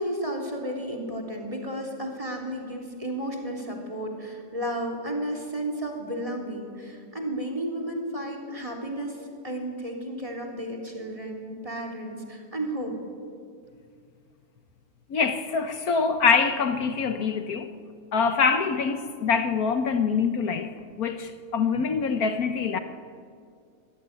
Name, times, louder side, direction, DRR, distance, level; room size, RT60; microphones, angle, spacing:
voice 1, 0.0-9.2 9.4-13.0, right 1 dB, 20° right, 3 dB, 3.5 m, -33 dB
voice 2, 15.1-17.7 18.1-20.7 21.0-22.8, left 5 dB, 65° left, 8 dB, 1.4 m, -24 dB
25.0 x 16.0 x 9.5 m, 2.2 s
omnidirectional pair, 1.7 m